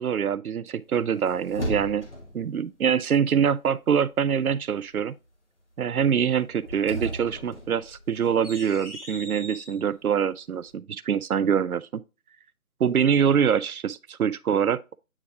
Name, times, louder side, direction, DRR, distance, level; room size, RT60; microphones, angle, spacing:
voice 1, 0.0-2.1 2.3-5.1 5.8-12.0 12.8-15.0, right 7 dB, 80° right, 0.5 m, -24 dB
sound 1, 0.9-2.4 6.5-9.8, equal, 50° left, 1.8 m, -36 dB
8.6 x 3.3 x 3.5 m
figure-of-eight pair, 165°, 43 cm